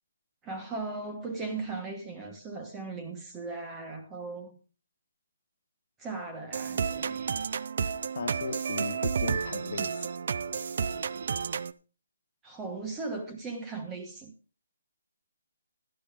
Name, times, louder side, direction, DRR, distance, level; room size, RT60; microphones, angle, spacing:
voice 1, 0.4-4.6 6.0-7.3 12.4-14.3, right 3 dB, 10° right, 1.1 m, -38 dB
sound 1, 6.5-11.7, right 6 dB, 40° right, 0.4 m, -31 dB
voice 2, 8.1-10.1, left 5 dB, 40° left, 1.1 m, -36 dB
11.5 x 11.5 x 3.5 m
hypercardioid pair, 175°, 0 cm